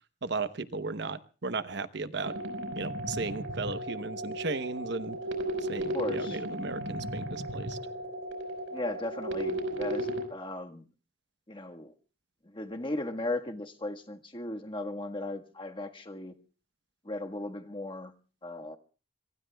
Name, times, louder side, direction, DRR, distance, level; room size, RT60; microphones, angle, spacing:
voice 1, 0.2-2.3 2.8-5.2 5.7-7.8, right 3 dB, 60° right, 0.9 m, -35 dB
sound 1, 2.2-10.2, right 1 dB, 75° right, 4.8 m, -35 dB
voice 2, 5.9-6.4 8.7-10.8 11.5-11.9 12.4-16.3 17.0-18.1 18.4-18.8, left 2 dB, 25° left, 1.5 m, -37 dB
26.0 x 24.0 x 2.3 m
head